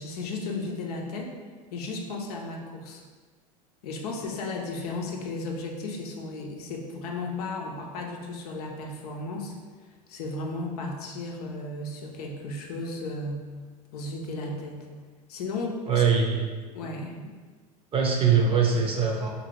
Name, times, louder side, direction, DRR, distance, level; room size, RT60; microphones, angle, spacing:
voice 1, 0.0-1.3 1.7-3.0 3.8-9.5 10.1-13.5 13.9-14.9 15.3-16.0 16.7-17.2, left 2 dB, 80° left, 0 dB, 0.6 m, -34 dB
voice 2, 15.9-16.5 17.9-19.3, right 6 dB, 30° right, 0 dB, 0.6 m, -22 dB
2.6 x 2.5 x 3.1 m, 1.4 s
hypercardioid pair, 90°, 19 cm